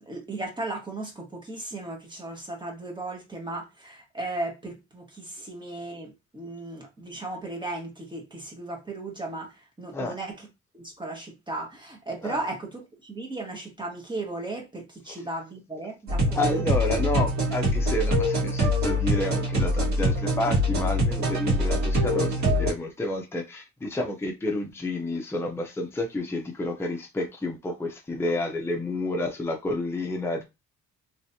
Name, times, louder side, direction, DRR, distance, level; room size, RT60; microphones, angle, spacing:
voice 1, 0.1-10.3 10.7-16.6, right 2 dB, 15° right, 1.5 m, -36 dB
sound 1, 16.1-22.7, equal, 65° right, 2.0 m, -24 dB
voice 2, 16.4-30.5, left 1 dB, 10° left, 0.6 m, -30 dB
3.2 x 3.1 x 2.7 m
cardioid pair, 90°, 30 cm